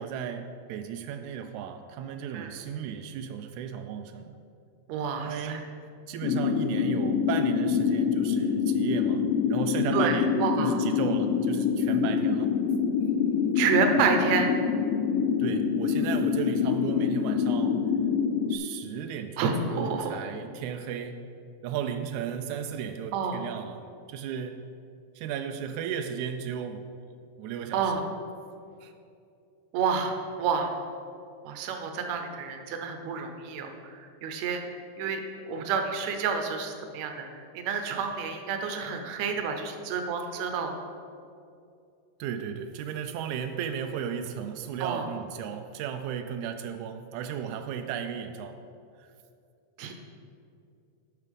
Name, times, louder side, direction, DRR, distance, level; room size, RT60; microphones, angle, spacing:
voice 1, 0.0-4.4 5.2-5.6 6.1-12.5 15.4-17.9 18.5-21.2 21.6-24.6 25.2-26.9 27.4-27.9 28.8-28.9 42.2-48.6 49.0-49.1, right 8 dB, 90° right, 6 dB, 1.7 m, -35 dB
voice 2, 4.9-5.6 9.9-10.8 13.6-14.5 19.4-20.1 23.1-23.4 27.7-28.0 29.7-30.7 31.5-34.6 35.0-40.7 44.8-45.1 49.8-49.9, right 5 dB, 70° right, 5 dB, 1.8 m, -29 dB
sound 1, 6.2-18.6, left 7 dB, 90° left, 2.3 m, -26 dB
12.0 x 5.5 x 5.3 m, 2.5 s
omnidirectional pair, 3.9 m